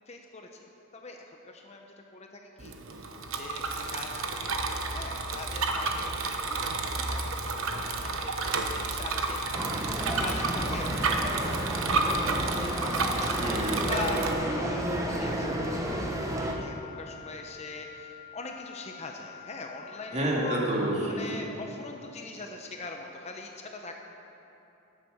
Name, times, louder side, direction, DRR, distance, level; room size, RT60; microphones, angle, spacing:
voice 1, 0.1-0.7 0.9-1.9 2.1-2.8 3.0-4.6 4.9-6.7 7.0-7.2 7.5-12.8 13.1-13.3 13.9-20.7 21.1-24.0, left 2 dB, 30° left, 3 dB, 0.8 m, -42 dB
Bicycle, 2.6-14.3, right 3 dB, 65° right, 1.0 m, -31 dB
sound 1, 9.5-16.5, right 1 dB, 15° right, 1.0 m, -31 dB
sound 2, 11.0-21.0, left 11 dB, 55° left, 1.3 m, -49 dB
voice 2, 13.4-13.8 20.1-21.4, right 1 dB, 30° right, -3 dB, 2.4 m, -29 dB
13.5 x 10.0 x 6.5 m, 2.9 s
head